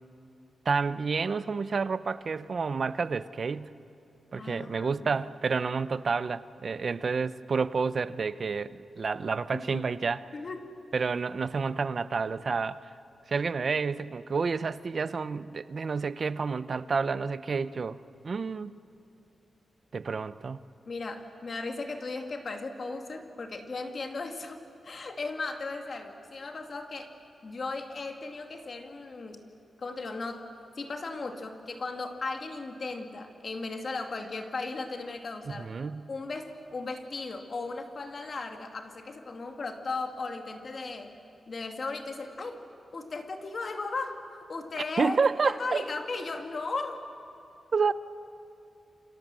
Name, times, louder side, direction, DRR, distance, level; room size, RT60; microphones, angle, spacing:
voice 1, 0.7-3.7 4.3-10.2 10.9-12.8 13.3-18.0 18.2-18.8 19.9-20.6 35.5-36.1 45.0-45.8 47.7-47.9, right 5 dB, 40° right, 15 dB, 0.7 m, -29 dB
voice 2, 4.4-5.1 9.5-9.8 10.3-10.7 20.9-27.1 27.4-29.4 29.8-35.7 36.1-41.1 41.5-42.6 42.9-47.1, left 3 dB, 40° left, 5 dB, 2.3 m, -36 dB
29.0 x 25.5 x 7.6 m, 2.6 s
wide cardioid pair, 160°, 0 cm